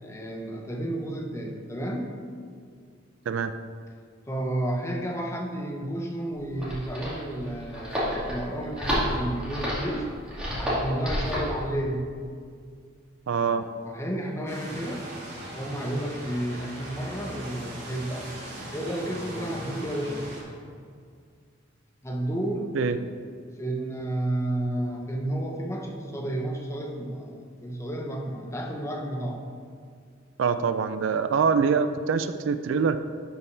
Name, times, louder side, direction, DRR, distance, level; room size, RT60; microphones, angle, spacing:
voice 1, 0.0-2.1 4.3-10.1 10.6-12.1 13.6-15.1 15.5-18.3 18.7-20.3 22.0-23.2 23.6-29.4, right 1 dB, 15° left, 1 dB, 0.8 m, -31 dB
sound 1, 6.3-11.5, equal, 5° right, 2.2 m, -30 dB
voice 2, 13.3-13.6 22.7-23.0 30.4-33.0, right 6 dB, 75° right, 10 dB, 0.4 m, -24 dB
sound 2, 14.5-20.4, right 1 dB, 60° right, 2.2 m, -39 dB
11.5 x 5.4 x 3.3 m, 2.1 s
head